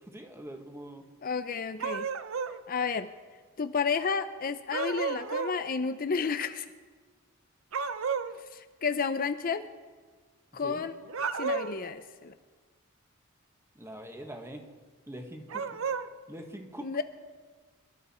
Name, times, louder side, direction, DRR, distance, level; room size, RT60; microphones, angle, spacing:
voice 1, 0.1-1.0 10.6-10.8 13.7-14.6 15.1-15.6 16.3-16.9, right 1 dB, 15° right, 4 dB, 1.4 m, -43 dB
voice 2, 1.2-2.1 2.7-3.1 3.6-6.7 8.5-9.6 10.5-11.0 11.4-12.3 16.8-17.0, left 5 dB, 45° left, 10 dB, 0.5 m, -31 dB
sound 1, 1.8-2.6 4.7-5.6 7.7-8.4 11.1-11.9 15.5-16.1, right 5 dB, 70° right, 0.7 m, -32 dB
25.5 x 12.0 x 4.3 m, 1.5 s
head